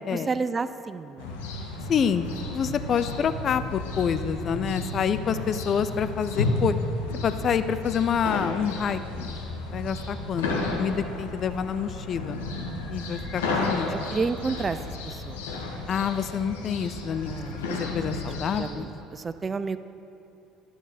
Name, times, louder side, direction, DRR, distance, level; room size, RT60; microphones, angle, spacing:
voice 1, 0.1-1.4 13.9-14.8 15.0-15.5 17.3-17.7 18.6-19.8, right 4 dB, 25° right, 13 dB, 0.3 m, -31 dB
sound 1, 1.2-18.7, left 2 dB, 75° left, 1.0 m, -32 dB
voice 2, 1.9-2.3 2.5-6.7 7.2-9.3 9.7-12.4 12.9-13.9 15.9-17.4 17.7-18.8, left 7 dB, 45° left, 12 dB, 0.4 m, -27 dB
12.0 x 6.1 x 4.2 m, 2.9 s
figure-of-eight pair, 60°, 0 cm